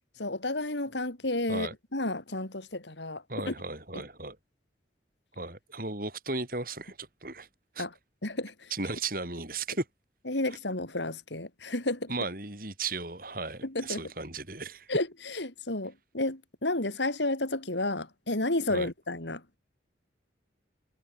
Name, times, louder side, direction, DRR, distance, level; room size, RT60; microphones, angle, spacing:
voice 1, 0.2-3.5 3.9-4.1 7.8-7.9 8.2-8.7 10.3-12.1 13.6-14.0 14.9-19.6, left 2 dB, 75° left, 4.1 m, -32 dB
voice 2, 3.3-4.4 5.4-7.5 7.8-7.9 8.7-9.9 12.1-14.9 18.7-18.9, right 3 dB, 50° right, 6.9 m, -35 dB
head